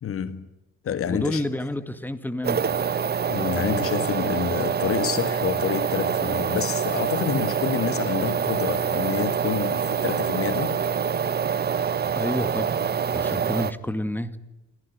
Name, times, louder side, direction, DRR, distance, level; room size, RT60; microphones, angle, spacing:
voice 1, 0.0-0.5 0.8-1.4 3.3-10.8, left 8 dB, 40° left, 1.6 m, -28 dB
voice 2, 1.1-2.8 3.6-3.9 12.1-12.7 13.1-14.4, left 1 dB, 5° left, 2.1 m, -29 dB
sound 1, 2.4-13.7, right 7 dB, 30° right, 1.1 m, -25 dB
29.0 x 18.5 x 9.4 m
figure-of-eight pair, 50°, 33 cm